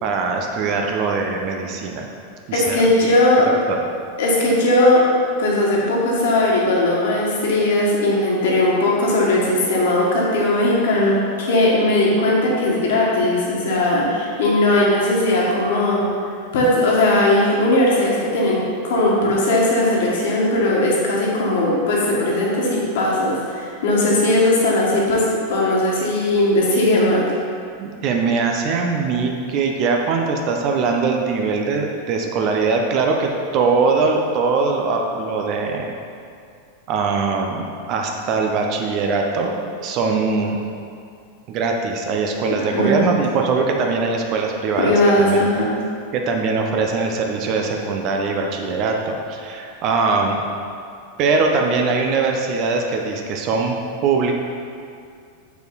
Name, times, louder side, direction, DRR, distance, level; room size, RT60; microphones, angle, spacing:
voice 1, 0.0-2.1 2.5-2.8 3.7-3.8 27.8-35.9 36.9-40.6 41.5-45.0 45.3-45.5 46.1-50.4 51.2-53.8 54.0-54.3, right 4 dB, 40° right, 2 dB, 0.9 m, -21 dB
voice 2, 2.5-3.5 4.2-5.0 5.4-16.1 16.5-27.3 42.5-43.0 44.8-45.7, left 1 dB, 55° left, -4 dB, 1.8 m, -18 dB
6.9 x 6.7 x 4.0 m, 2.3 s
figure-of-eight pair, 90°, 0 cm